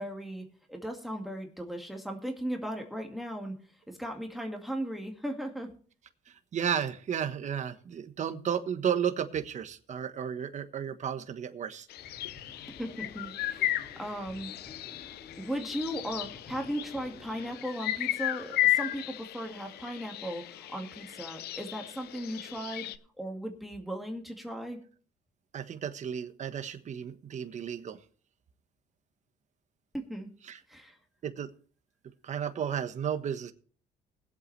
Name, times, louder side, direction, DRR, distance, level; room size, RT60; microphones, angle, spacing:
voice 1, 0.0-3.6 3.9-5.7 12.7-14.5 15.0-22.9 23.2-24.8 29.9-30.3 30.7-31.0, equal, ahead, 3 dB, 2.1 m, -37 dB
voice 2, 6.3-11.9 25.5-28.0 30.5-30.6 31.2-31.5 32.2-33.5, right 8 dB, 45° right, 9 dB, 1.3 m, -33 dB
sound 1, 11.9-23.0, left 14 dB, 70° left, 0.7 m, -35 dB
sound 2, 12.0-17.6, left 4 dB, 35° left, 2.1 m, -52 dB
20.5 x 8.1 x 3.3 m, 0.43 s
cardioid pair, 110°, 17 cm